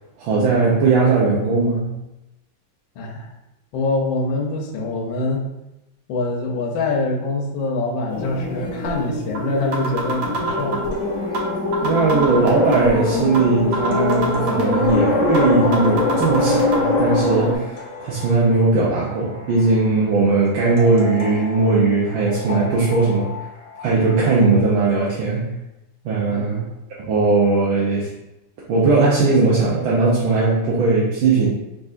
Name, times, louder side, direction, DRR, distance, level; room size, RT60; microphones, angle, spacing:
voice 1, 0.2-1.9 11.8-23.3 23.8-25.5 26.0-26.7 27.1-28.1 28.7-31.5, right 3 dB, 90° right, -6 dB, 1.6 m, -18 dB
voice 2, 3.0-3.3 3.7-5.4 6.1-10.8 26.3-26.7, left 2 dB, 80° left, -1 dB, 1.5 m, -24 dB
sound 1, 8.1-17.6, left 2 dB, 45° left, 1.2 m, -22 dB
sound 2, 8.8-8.9 9.3-9.4 9.7-10.9 11.3-11.5 11.7-12.9 13.3-13.4 13.7-14.9 15.3-15.5 15.7-16.8, right 3 dB, 50° right, 1.4 m, -25 dB
sound 3, 10.9-24.6, left 2 dB, 65° left, 1.2 m, -37 dB
5.2 x 3.7 x 2.5 m, 0.93 s
omnidirectional pair, 2.1 m